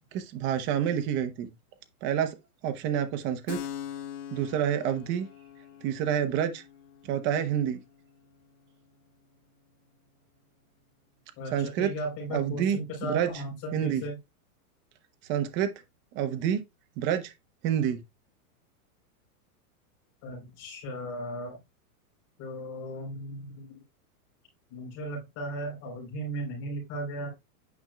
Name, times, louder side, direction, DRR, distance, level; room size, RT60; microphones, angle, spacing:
voice 1, 0.1-1.5 2.0-2.3 2.6-3.6 4.3-5.3 5.8-6.6 7.1-7.8 11.5-11.9 12.3-13.3 13.7-14.0 15.3-15.7 16.1-16.6 17.0-17.3 17.6-18.0, right 9 dB, 25° right, 0.8 m, -28 dB
Keyboard (musical), 3.5-10.8, left 10 dB, 80° left, 1.5 m, -45 dB
voice 2, 11.4-14.2 20.2-21.6 22.4-23.8 24.7-27.3, right 1 dB, 35° left, 3.8 m, -36 dB
9.3 x 5.2 x 2.3 m
supercardioid pair, 160°, 44 cm